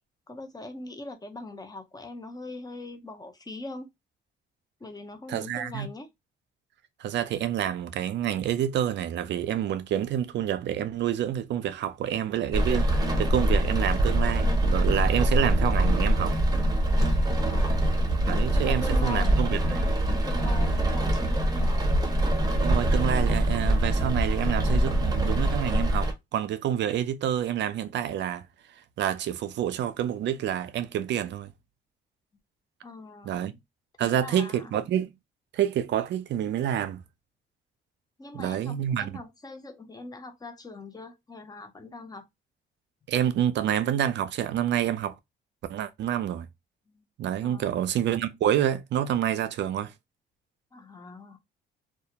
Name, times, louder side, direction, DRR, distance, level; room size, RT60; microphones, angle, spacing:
voice 1, 0.3-3.9 4.8-6.1 17.3-17.9 18.5-19.4 19.7-19.9 20.2-21.9 32.8-33.6 34.0-34.7 38.2-42.3 46.9-47.0 47.4-47.7 50.7-51.4, left 2 dB, 20° left, 0.6 m, -41 dB
voice 2, 5.3-5.9 7.0-16.4 18.3-19.8 22.6-28.5 29.0-31.5 33.2-33.5 34.0-35.1 35.5-37.0 38.3-39.2 43.1-45.2 45.7-46.5 47.2-49.9, right 10 dB, 65° right, 0.4 m, -28 dB
Rain, 12.5-26.1, right 1 dB, 20° right, 0.7 m, -24 dB
2.2 x 2.1 x 2.7 m
cardioid pair, 90°, 20 cm